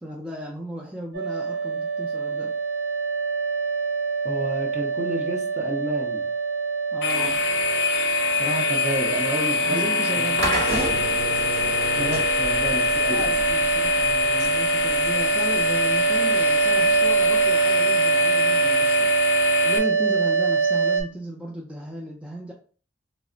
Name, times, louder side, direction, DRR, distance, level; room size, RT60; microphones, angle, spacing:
voice 1, 0.0-2.6 6.9-7.4 9.6-11.0 13.1-19.4 19.6-22.5, equal, 5° right, -1 dB, 0.3 m, -35 dB
sound 1, 1.1-21.0, right 5 dB, 60° right, 1.0 m, -24 dB
voice 2, 4.2-6.3 8.4-9.9 10.1-10.2 12.0-13.3, equal, 40° right, 2 dB, 0.7 m, -30 dB
sound 2, 7.0-19.8, left 8 dB, 85° left, 0.5 m, -25 dB
sound 3, 10.4-17.5, equal, 80° right, 1.2 m, -33 dB
3.2 x 2.0 x 3.7 m, 0.41 s
head